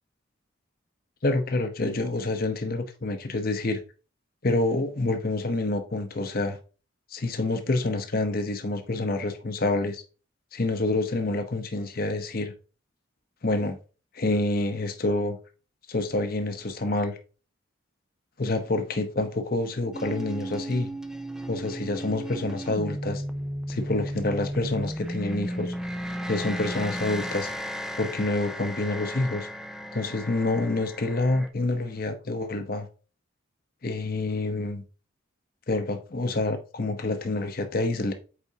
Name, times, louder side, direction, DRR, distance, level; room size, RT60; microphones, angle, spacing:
voice 1, 1.2-3.8 4.4-6.6 7.1-10.0 10.5-12.5 13.4-13.8 14.1-15.4 15.9-17.2 18.4-20.9 21.5-23.2 23.7-25.7 26.3-27.5 28.0-29.5 29.9-32.9 33.8-34.8 35.7-38.1, left 2 dB, 45° left, 0.8 m, -27 dB
sound 1, 19.9-31.5, equal, 5° right, 0.4 m, -34 dB
8.3 x 4.1 x 2.8 m
head